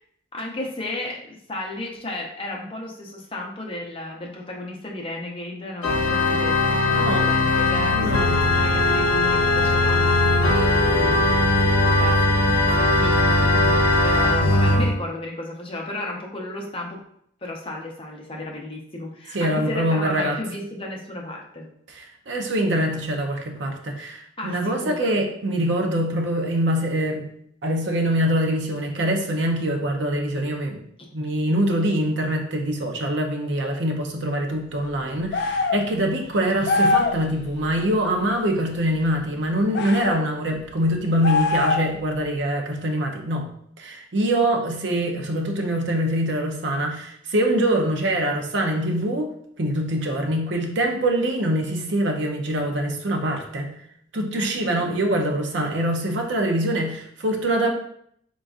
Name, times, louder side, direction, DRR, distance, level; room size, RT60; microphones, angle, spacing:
voice 1, 0.3-8.1 8.5-17.0 17.4-21.7 24.4-25.1 31.0-31.1 54.4-54.7, left 1 dB, 25° left, -1 dB, 0.7 m, -34 dB
Organ, 5.8-14.9, left 2 dB, 85° left, 0.7 m, -19 dB
voice 2, 6.9-7.3 7.9-8.4 19.3-20.4 21.9-27.3 27.6-30.8 31.1-43.5 43.8-49.3 49.6-53.7 54.1-57.7, right 1 dB, 60° right, 3 dB, 0.6 m, -24 dB
sound 1, 35.3-35.8 36.6-37.2 39.7-40.2 41.2-42.0, left 3 dB, 55° left, 0.3 m, -22 dB
3.9 x 3.7 x 2.4 m, 0.68 s
head